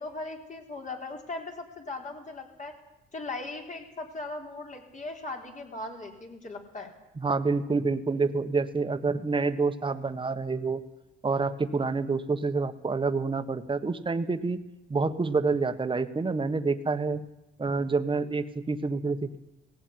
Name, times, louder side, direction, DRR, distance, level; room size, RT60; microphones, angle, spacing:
voice 1, 0.0-2.7 3.1-6.9, left 2 dB, 40° left, 2 dB, 4.2 m, -38 dB
voice 2, 7.2-10.8 11.2-14.6 14.9-17.2 17.6-19.4, right 4 dB, 25° right, 9 dB, 1.5 m, -28 dB
18.5 x 16.0 x 9.6 m, 0.95 s
cardioid pair, 90°, 20 cm